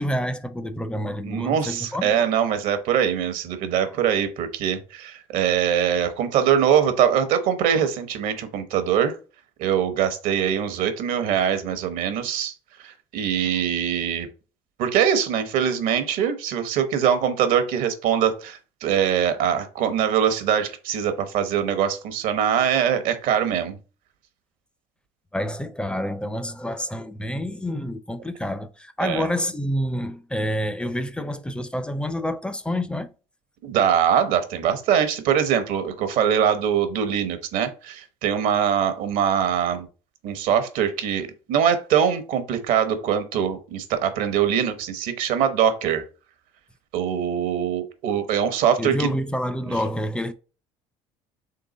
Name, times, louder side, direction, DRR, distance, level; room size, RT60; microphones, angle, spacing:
voice 1, 0.0-2.3 7.7-7.8 25.3-33.1 48.8-50.3, equal, 5° left, 0.5 m, -28 dB
voice 2, 1.2-9.1 9.6-12.5 12.8-14.3 14.8-23.8 29.0-29.3 33.6-39.9 40.2-46.0 46.9-49.1, right 8 dB, 75° right, 0.8 m, -23 dB
3.8 x 3.4 x 3.9 m
supercardioid pair, 90°, 14 cm